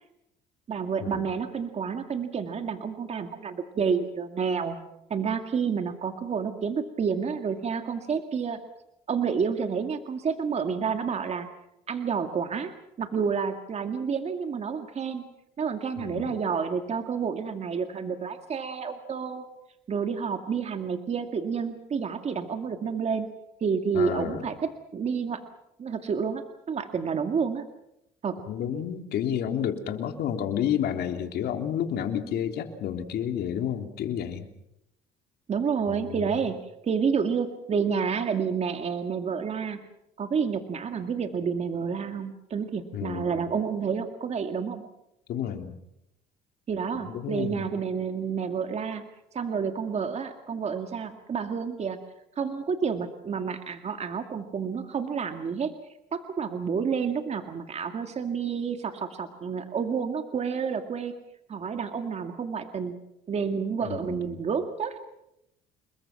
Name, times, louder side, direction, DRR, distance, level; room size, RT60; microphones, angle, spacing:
voice 1, 0.7-4.8 5.1-8.6 9.1-11.5 11.9-15.3 15.6-19.4 19.9-23.3 23.6-25.4 25.8-27.6 28.2-28.4 35.5-39.8 40.2-44.8 46.7-49.0 49.3-52.0 52.4-55.7 56.1-61.1 61.5-63.0 63.3-65.0, right 6 dB, 40° right, 6 dB, 2.1 m, -29 dB
voice 2, 16.0-16.4 23.9-24.5 28.5-34.5 35.9-36.3 42.9-43.3 45.3-45.7 47.1-47.7 63.8-64.4, left 9 dB, 70° left, 5 dB, 3.3 m, -30 dB
29.5 x 21.5 x 6.0 m, 0.82 s
cardioid pair, 110°, 17 cm